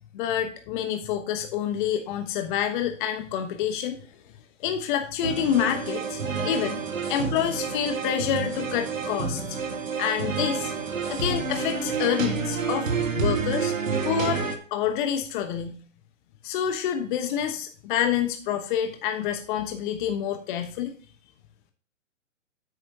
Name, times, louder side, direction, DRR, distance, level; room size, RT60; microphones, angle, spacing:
voice 1, 0.1-4.0 4.6-6.8 7.1-9.4 10.0-10.7 11.1-12.9 13.1-13.7 14.0-14.4 14.7-15.8 16.4-20.9, left 9 dB, 40° left, 7 dB, 1.1 m, -27 dB
sound 1, 5.2-14.6, right 5 dB, 90° right, 1.8 m, -29 dB
9.7 x 8.9 x 2.8 m, 0.43 s
figure-of-eight pair, 120°, 38 cm